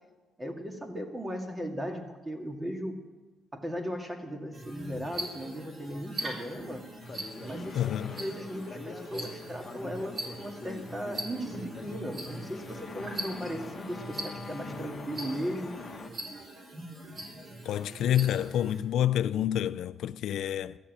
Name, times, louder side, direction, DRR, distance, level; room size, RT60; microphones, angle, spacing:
voice 1, 0.4-3.0 3.5-6.8 7.4-15.8, equal, 20° right, 2.1 m, -37 dB
sound 1, 4.5-18.8, right 1 dB, 45° right, 4.0 m, -42 dB
sound 2, 7.0-16.1, left 4 dB, 35° left, 1.3 m, -44 dB
voice 2, 7.7-8.2 17.7-20.8, left 11 dB, 75° left, 0.3 m, -28 dB
14.0 x 7.4 x 8.5 m
cardioid pair, 90°, 0 cm